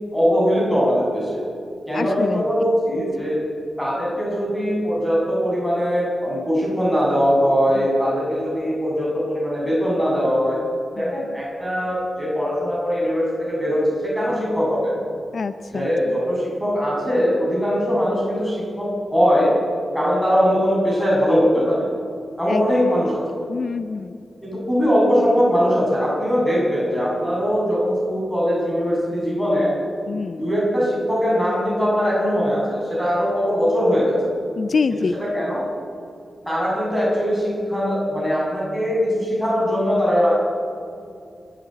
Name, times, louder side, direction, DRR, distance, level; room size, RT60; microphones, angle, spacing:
voice 1, 0.1-1.4 1.9-3.4 3.8-10.6 11.0-14.9 15.7-19.6 19.9-21.9 22.4-23.2 24.4-29.7 30.4-34.2 35.2-35.7 36.5-40.4, equal, 5° left, -4 dB, 7.6 m, -21 dB
voice 2, 1.9-2.4 7.8-7.9 11.0-11.2 15.3-16.2 22.5-22.9 23.5-24.3 30.1-30.5 34.6-35.2, left 4 dB, 50° left, 11 dB, 0.5 m, -26 dB
28.0 x 12.5 x 9.0 m, 2.4 s
wide cardioid pair, 175°, 0 cm